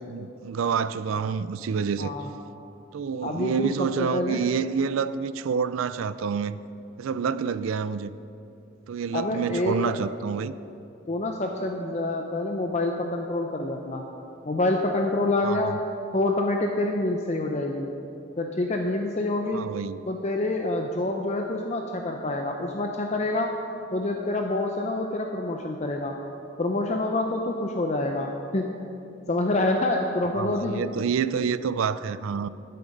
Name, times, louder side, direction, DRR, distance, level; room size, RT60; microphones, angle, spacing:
voice 1, 0.0-2.1 2.9-6.6 7.0-8.1 8.9-10.5 15.4-15.8 19.5-20.0 30.3-32.5, right 6 dB, 80° right, 0.4 m, -28 dB
voice 2, 2.0-2.3 3.2-4.4 9.1-10.0 11.1-14.0 14.5-15.7 16.1-17.9 18.4-19.7 20.1-23.5 23.9-26.1 26.6-28.6 29.3-30.8, left 2 dB, 35° left, 0.5 m, -27 dB
11.5 x 8.7 x 5.2 m
head